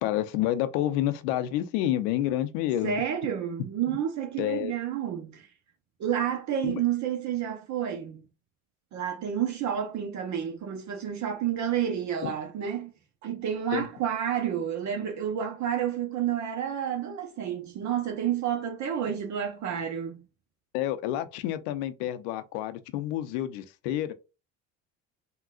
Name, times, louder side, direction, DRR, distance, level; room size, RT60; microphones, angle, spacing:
voice 1, 0.0-2.9 4.4-4.7 6.6-6.8 12.2-12.3 13.7-13.9 20.7-24.1, left 13 dB, 75° left, 0.6 m, -29 dB
voice 2, 2.8-5.5 6.0-8.2 8.9-12.9 13.2-20.2, right 9 dB, 50° right, 0.7 m, -30 dB
3.7 x 2.3 x 2.3 m
supercardioid pair, 85°, 38 cm